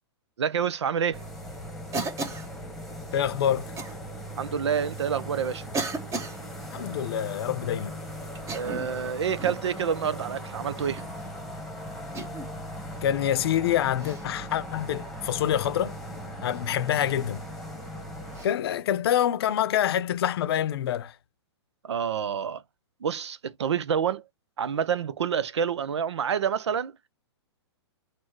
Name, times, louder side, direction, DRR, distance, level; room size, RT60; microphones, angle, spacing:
voice 1, 0.4-1.2 4.4-5.6 8.5-11.0 21.8-22.6 23.0-24.2 24.6-26.9, right 7 dB, 80° right, 0.6 m, -28 dB
sound 1, 1.1-18.5, equal, ahead, 1.3 m, -39 dB
Cough, 1.9-2.5 3.8-4.0 4.8-4.9 5.7-6.4 8.3-9.0 9.4-9.7 10.8-11.1 12.1-12.5 14.0-14.3 16.5-16.6 18.3-18.5, right 3 dB, 20° right, 1.0 m, -34 dB
voice 2, 3.1-3.7 6.7-8.0 13.0-16.0 16.4-17.4 18.4-21.2, left 10 dB, 60° left, 0.6 m, -26 dB
4.3 x 2.2 x 4.5 m
hypercardioid pair, 125°, 14 cm